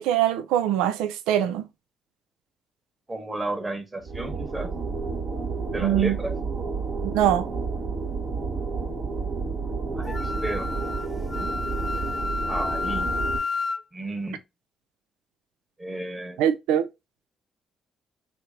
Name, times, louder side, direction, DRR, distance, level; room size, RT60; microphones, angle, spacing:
voice 1, 0.0-1.6 5.7-6.2 7.0-7.5 16.4-16.9, right 11 dB, 90° right, 0.4 m, -23 dB
voice 2, 3.1-4.7 5.7-6.3 9.9-10.7 11.4-11.6 12.5-13.1 13.9-14.4 15.8-16.4, right 2 dB, 25° right, 1.2 m, -33 dB
engine hum new, 4.0-13.4, right 4 dB, 65° right, 1.3 m, -30 dB
Wind instrument woodwind instrument, 10.1-13.8, left 4 dB, 30° left, 0.4 m, -30 dB
3.2 x 2.8 x 3.7 m
supercardioid pair, 60°, 0 cm